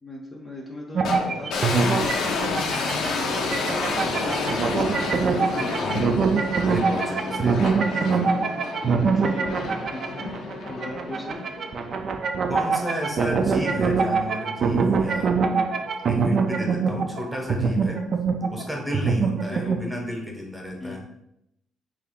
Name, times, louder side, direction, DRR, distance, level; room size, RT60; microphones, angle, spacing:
voice 1, 0.0-2.2 2.6-3.7 4.0-4.7 7.2-7.5 9.1-10.4 10.7-11.4 19.5-19.8 20.8-21.0, left 1 dB, 25° left, -2 dB, 0.6 m, -39 dB
sound 1, 0.9-19.8, right 5 dB, 50° right, 0.3 m, -24 dB
sound 2, 1.0-12.3, left 4 dB, 75° left, 0.5 m, -30 dB
voice 2, 5.6-6.2 6.7-8.4 10.2-10.4 12.5-15.3 16.0-18.0 18.5-21.0, equal, 5° right, 0 dB, 0.9 m, -32 dB
3.3 x 2.4 x 3.5 m, 0.80 s
cardioid pair, 100°, 0 cm